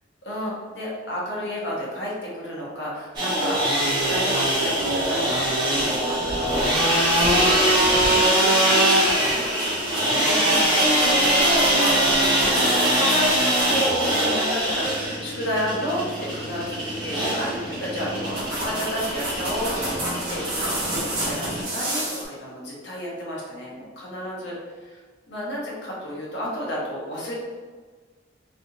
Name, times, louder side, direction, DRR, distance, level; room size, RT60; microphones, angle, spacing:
voice 1, 0.3-9.4 9.8-10.6 11.0-13.3 13.7-18.4 18.6-25.0 25.3-27.3, equal, 65° left, -5 dB, 1.0 m, -31 dB
sound 1, 3.1-21.6, right 1 dB, 25° right, 1.0 m, -22 dB
sound 2, 6.7-7.6 8.3-8.6 9.0-14.1 16.1-16.3 16.7-17.0 17.8-17.9 18.1-22.2, right 1 dB, 55° right, 1.2 m, -31 dB
3.2 x 2.8 x 2.7 m, 1.5 s
head